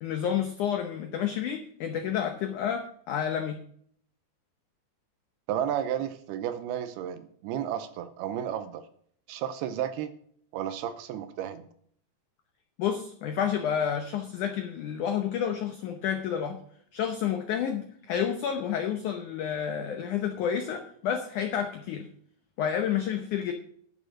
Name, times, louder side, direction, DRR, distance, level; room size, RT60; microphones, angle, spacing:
voice 1, 0.0-3.6 12.8-16.6 16.9-22.1 22.6-23.5, left 8 dB, 90° left, 6 dB, 1.7 m, -30 dB
voice 2, 5.5-8.8 9.3-10.1 10.5-11.7, right 10 dB, 80° right, 11 dB, 2.6 m, -32 dB
11.0 x 7.2 x 6.2 m, 0.62 s
omnidirectional pair, 4.9 m